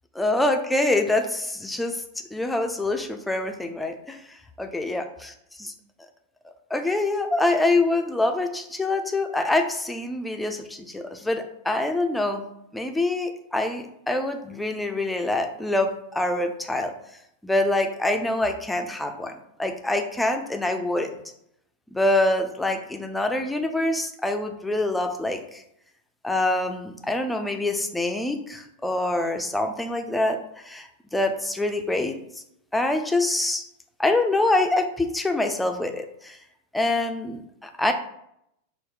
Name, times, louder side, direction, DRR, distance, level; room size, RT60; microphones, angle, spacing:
voice 1, 0.2-2.0 2.3-5.0 5.6-5.7 6.7-12.4 12.7-16.9 17.4-19.3 19.6-21.1 21.9-25.6 26.2-32.2 32.7-33.6 34.0-36.4 36.7-37.9, left 2 dB, 5° left, 5 dB, 0.4 m, -25 dB
3.6 x 2.0 x 4.0 m, 0.77 s
figure-of-eight pair, 90°, 0 cm